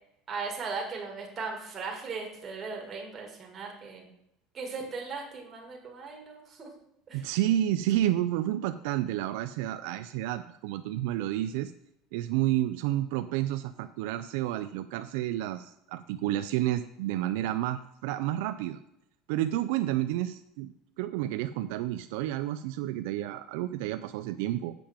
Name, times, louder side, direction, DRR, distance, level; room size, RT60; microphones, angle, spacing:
voice 1, 0.3-4.1 4.5-6.7 7.1-7.2, right 4 dB, 20° right, 0 dB, 2.1 m, -38 dB
voice 2, 7.1-11.7 12.1-18.8 19.3-24.7, right 13 dB, 75° right, 9 dB, 0.4 m, -30 dB
7.6 x 5.1 x 7.1 m, 0.80 s
cardioid pair, 170°, 0 cm